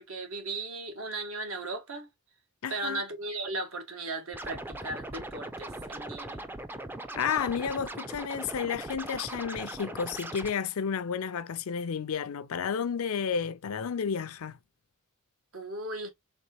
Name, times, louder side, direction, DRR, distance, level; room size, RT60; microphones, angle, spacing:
voice 1, 0.0-2.1 2.7-6.4 15.5-16.1, right 2 dB, 70° right, 1.3 m, -36 dB
voice 2, 2.6-3.0 7.2-14.6, left 6 dB, 75° left, 0.5 m, -31 dB
Scratching (performance technique), 4.3-10.5, right 1 dB, 10° right, 0.4 m, -40 dB
4.1 x 3.3 x 2.9 m
head